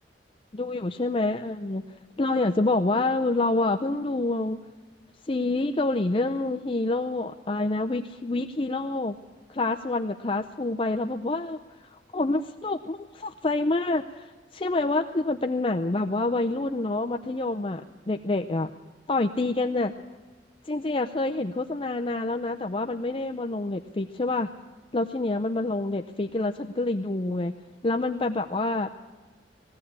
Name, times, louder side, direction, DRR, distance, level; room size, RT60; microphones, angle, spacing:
voice 1, 0.5-1.8 2.2-4.6 5.3-9.2 9.5-11.6 12.1-17.8 18.1-18.7 19.1-19.9 20.7-24.5 24.9-27.5 27.8-28.9, left 2 dB, 30° left, 5 dB, 0.6 m, -27 dB
20.5 x 16.0 x 8.8 m, 1.3 s
head